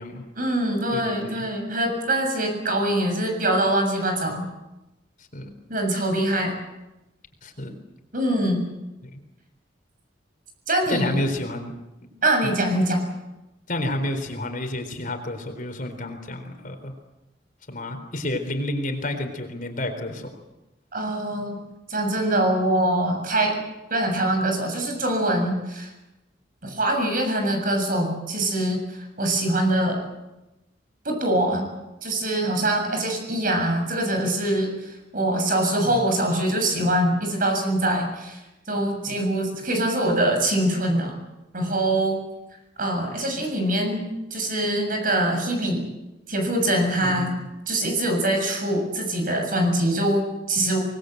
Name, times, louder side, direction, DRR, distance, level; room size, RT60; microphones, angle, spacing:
voice 1, 0.4-4.4 5.7-6.5 8.1-8.7 10.7-11.1 12.2-13.0 20.9-21.6 21.9-23.6 23.9-25.9 26.6-30.0 31.0-31.7 32.0-38.4 38.7-41.1 41.5-42.2 42.8-45.8 46.3-47.3 47.7-50.8, right 1 dB, 50° right, 4 dB, 7.2 m, -23 dB
voice 2, 0.9-1.5 5.3-5.4 7.4-7.7 9.0-9.2 10.9-11.7 12.4-12.5 13.7-16.9 17.7-20.3 35.9-36.0 39.1-39.2 47.0-47.4, left 1 dB, 45° left, 5 dB, 4.0 m, -30 dB
26.0 x 20.5 x 8.1 m, 0.97 s
head